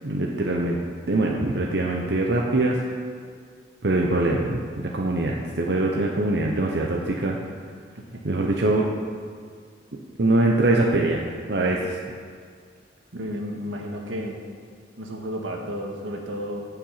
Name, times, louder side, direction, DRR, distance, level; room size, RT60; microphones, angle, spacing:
voice 1, 0.0-0.8 1.1-2.8 3.8-7.4 8.2-8.9 10.2-11.2 11.5-12.0, right 2 dB, 65° right, 0 dB, 0.9 m, -23 dB
voice 2, 13.1-14.4 15.0-16.7, equal, 90° right, 1 dB, 1.7 m, -32 dB
15.5 x 5.8 x 5.8 m, 2.1 s
head